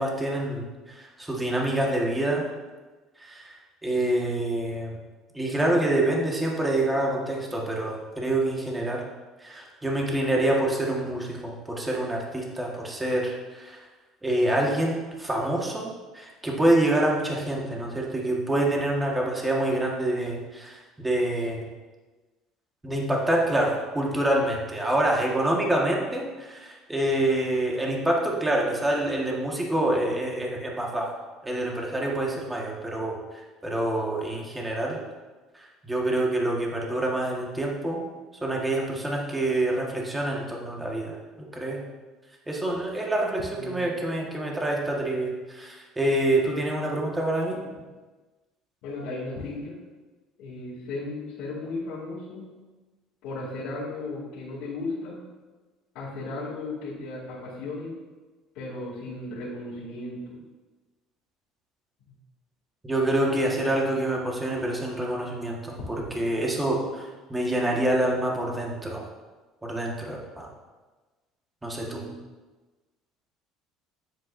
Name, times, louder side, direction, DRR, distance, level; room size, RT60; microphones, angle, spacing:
voice 1, 0.0-2.4 3.2-3.5 3.8-5.0 5.3-9.0 9.4-13.8 14.2-21.6 22.8-31.1 31.4-33.2 33.6-35.0 35.5-38.0 38.4-41.8 42.5-47.5 62.8-65.7 66.1-69.0 69.6-70.5 71.6-72.0, right 1 dB, 10° right, -2 dB, 1.4 m, -26 dB
voice 2, 48.8-49.8 50.4-52.5 53.2-55.2 55.9-58.0 58.5-60.4 62.1-62.2 71.8-72.2, left 2 dB, 70° left, -9 dB, 2.5 m, -35 dB
9.3 x 7.8 x 2.6 m, 1.2 s
cardioid pair, 135°, 0 cm